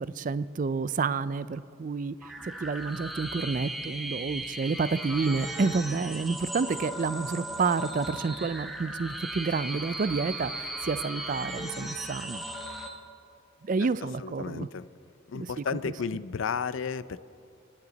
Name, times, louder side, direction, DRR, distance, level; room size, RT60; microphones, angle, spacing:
voice 1, 0.0-12.4 13.6-14.7 15.3-15.9, right 4 dB, 40° right, 16 dB, 0.4 m, -29 dB
sound 1, 2.2-12.9, right 1 dB, ahead, 1.1 m, -37 dB
voice 2, 14.2-14.9 15.3-17.2, left 6 dB, 75° left, 16 dB, 0.5 m, -33 dB
29.5 x 9.9 x 4.0 m, 2.5 s
head